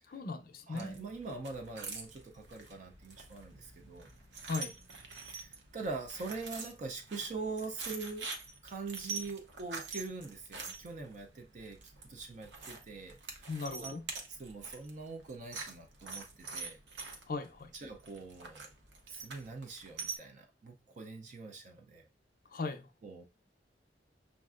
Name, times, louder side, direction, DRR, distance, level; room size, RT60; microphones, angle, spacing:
voice 1, 0.0-1.0 4.5-4.7 13.5-14.0 17.3-17.7 22.5-22.9, left 3 dB, 55° left, 0.5 m, -38 dB
voice 2, 0.7-4.1 5.2-8.3 8.6-13.9 14.3-16.8 17.7-18.7 19.1-22.0 23.0-23.2, right 3 dB, 45° right, 0.4 m, -43 dB
sound 1, 0.8-20.2, right 4 dB, 80° right, 0.8 m, -46 dB
6.2 x 2.4 x 2.4 m
head